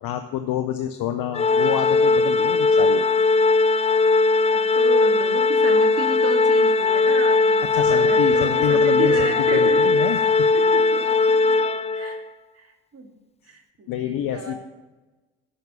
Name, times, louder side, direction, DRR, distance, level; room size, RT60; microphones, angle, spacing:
voice 1, 0.0-3.1 7.6-10.5 13.9-14.6, left 10 dB, 60° left, 8 dB, 0.8 m, -27 dB
Organ, 1.3-12.2, left 3 dB, 15° left, 0.4 m, -19 dB
voice 2, 4.5-10.3 10.5-11.6 11.9-12.3 12.5-13.1 13.5-14.6, right 3 dB, 40° right, 3 dB, 2.4 m, -33 dB
14.0 x 6.0 x 6.9 m, 1.2 s
hypercardioid pair, 55°, 38 cm